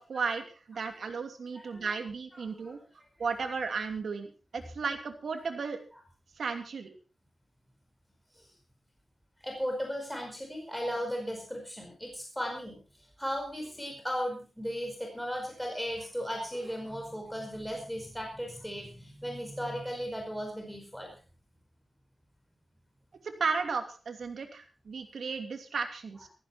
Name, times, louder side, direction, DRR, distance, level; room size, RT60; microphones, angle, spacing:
voice 1, 0.0-2.8 3.2-5.8 6.4-6.9 23.2-26.3, right 5 dB, 90° right, 6 dB, 2.8 m, -34 dB
voice 2, 9.4-12.8 13.2-21.1, equal, ahead, 1 dB, 5.1 m, -36 dB
15.5 x 15.0 x 4.4 m, 0.35 s
wide cardioid pair, 95°, 0 cm